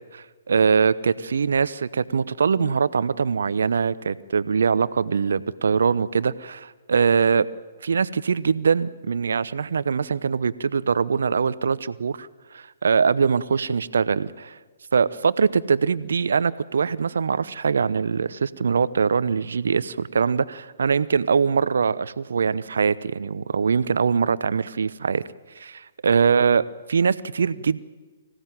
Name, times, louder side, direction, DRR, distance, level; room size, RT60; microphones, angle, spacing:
voice 1, 0.1-7.5 7.8-14.6 14.9-25.2 25.6-27.8, right 5 dB, 70° right, 16 dB, 0.9 m, -22 dB
25.0 x 16.5 x 9.2 m, 1.3 s
figure-of-eight pair, 125°, 0 cm